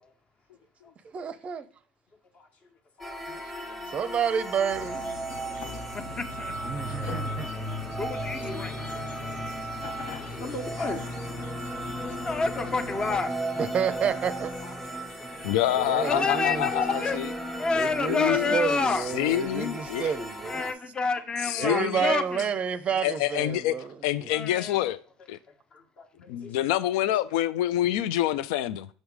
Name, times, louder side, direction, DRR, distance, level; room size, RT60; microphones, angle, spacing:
voice 1, 1.1-1.7 3.9-5.1 6.6-7.5 13.6-14.5 15.7-16.7 17.7-20.6 21.6-24.3, right 7 dB, 35° right, 0.5 m, -30 dB
sound 1, 3.0-20.7, right 1 dB, 5° left, 1.0 m, -35 dB
sound 2, 4.7-13.2, left 3 dB, 60° left, 0.8 m, -42 dB
voice 2, 5.9-6.5 8.0-8.7 12.2-13.3 16.0-17.2 17.6-19.1 20.4-22.5 24.3-24.8, left 4 dB, 25° left, 0.6 m, -28 dB
voice 3, 7.0-7.6 9.2-9.8 10.2-11.1 14.6-15.0 15.4-15.6 19.8-20.1 25.7-26.5, left 2 dB, 40° left, 1.3 m, -41 dB
voice 4, 15.4-17.3 18.1-18.5 19.1-20.1 21.4-22.1 23.0-23.8 24.0-25.0 25.3-25.4 26.3-28.9, left 13 dB, 75° left, 0.3 m, -27 dB
6.4 x 3.5 x 4.7 m
hypercardioid pair, 85°, 4 cm